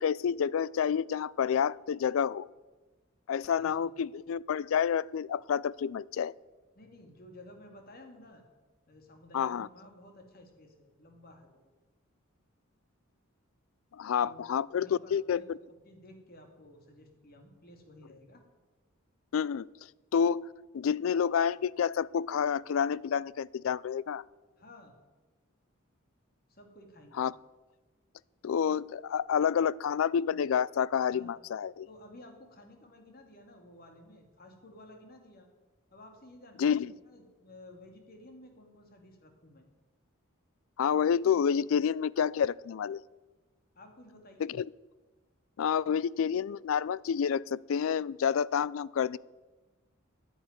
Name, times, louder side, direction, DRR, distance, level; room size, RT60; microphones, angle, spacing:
voice 1, 0.0-2.5 3.3-6.3 9.3-9.7 13.9-15.4 19.3-19.7 20.1-24.2 27.2-27.3 28.4-31.9 36.6-36.9 40.8-43.0 44.4-44.7 45.6-49.2, left 7 dB, 70° left, 23 dB, 0.3 m, -29 dB
voice 2, 3.5-3.9 6.7-8.4 8.9-11.5 14.2-14.4 14.7-15.5 15.8-18.4 24.6-25.0 26.5-27.2 31.1-31.3 31.9-35.5 35.9-39.6 43.7-44.6, left 1 dB, 45° left, 4 dB, 2.3 m, -53 dB
10.0 x 9.2 x 9.6 m, 1.2 s
head